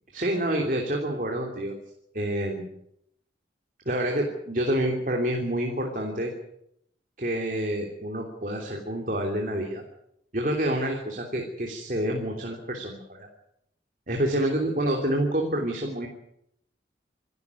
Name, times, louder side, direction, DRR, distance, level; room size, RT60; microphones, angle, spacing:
voice 1, 0.1-1.7 2.1-2.7 3.8-6.3 7.2-9.8 10.3-13.3 14.1-16.1, right 1 dB, 45° right, 1 dB, 3.1 m, -28 dB
27.5 x 12.5 x 9.7 m, 0.76 s
head